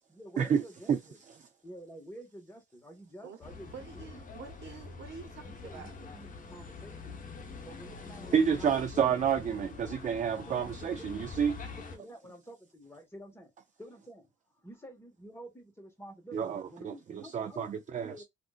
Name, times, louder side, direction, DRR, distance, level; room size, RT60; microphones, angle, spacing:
voice 1, 0.1-1.2 1.6-4.2 5.4-7.3 7.6-9.0 10.4-13.5 13.8-14.3 14.6-17.8 18.0-18.2, right 1 dB, 10° left, 1.5 m, -50 dB
sound 1, 3.4-12.0, left 4 dB, 45° left, 1.0 m, -45 dB
voice 2, 3.6-6.0, right 6 dB, 65° right, 1.1 m, -47 dB
voice 3, 8.3-11.6 16.3-18.1, right 7 dB, 40° right, 0.4 m, -29 dB
3.5 x 2.5 x 2.4 m
cardioid pair, 90°, 20 cm